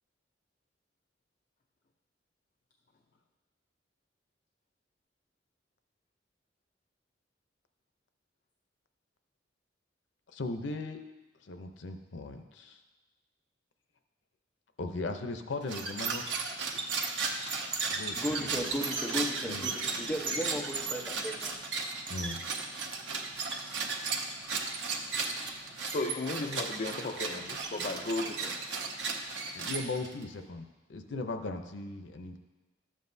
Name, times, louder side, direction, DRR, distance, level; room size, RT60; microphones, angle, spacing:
voice 1, 10.3-11.0 11.4-12.8 14.8-16.3 17.9-18.6 19.5-19.7 22.1-22.4 29.5-32.4, left 3 dB, 90° left, 6 dB, 0.7 m, -38 dB
sound 1, 15.6-30.2, right 4 dB, 80° right, 0.9 m, -35 dB
voice 2, 18.1-21.5, equal, 5° left, -1 dB, 0.9 m, -35 dB
voice 3, 25.8-28.6, left 2 dB, 45° left, 3 dB, 0.5 m, -35 dB
12.0 x 7.6 x 2.7 m, 1.2 s
head